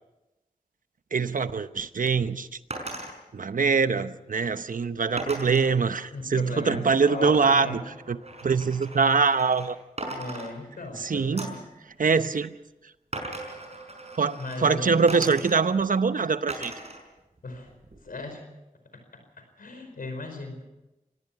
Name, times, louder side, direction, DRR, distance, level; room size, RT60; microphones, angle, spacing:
voice 1, 1.1-2.5 3.3-7.8 8.1-8.2 8.4-9.8 11.0-11.6 12.0-12.5 14.2-16.7, right 5 dB, 70° right, 12 dB, 0.9 m, -23 dB
sound 1, 2.7-3.1 5.2-5.7 7.2-9.7 10.0-10.9 11.4-11.7 13.1-14.6 15.1-15.8 16.5-17.0 17.4-18.2, right 2 dB, 50° right, 5.4 m, -38 dB
voice 2, 6.1-7.8 10.0-11.6 14.4-15.1 17.4-17.7 18.0-18.4 18.9-19.2 19.6-20.6, left 2 dB, 90° left, 6 dB, 4.9 m, -37 dB
25.0 x 18.0 x 5.9 m, 0.99 s
cardioid pair, 50°, 14 cm